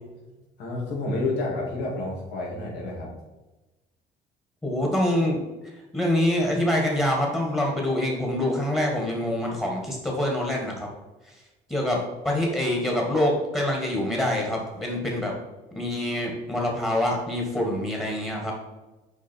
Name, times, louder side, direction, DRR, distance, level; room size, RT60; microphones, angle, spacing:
voice 1, 0.6-3.1, left 2 dB, 85° left, -3 dB, 2.5 m, -29 dB
voice 2, 4.6-5.4 5.6-10.9 11.3-11.4 11.7-15.3 15.7-18.5, left 1 dB, 10° left, -1 dB, 1.6 m, -25 dB
6.3 x 5.0 x 4.5 m, 1.1 s
cardioid pair, 110°, 17 cm